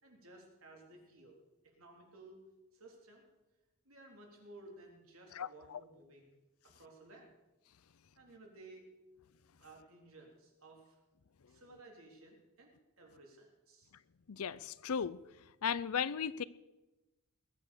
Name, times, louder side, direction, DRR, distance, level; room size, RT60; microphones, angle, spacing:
voice 1, 0.0-2.4 2.7-3.2 3.9-6.3 6.7-7.3 8.2-8.9 9.6-11.0 11.5-12.7 13.0-13.9, right 2 dB, 70° right, 3.6 m, -57 dB
voice 2, 5.3-5.8 14.3-15.2 15.6-16.4, left 7 dB, 90° left, 0.6 m, -36 dB
21.0 x 8.5 x 6.6 m
head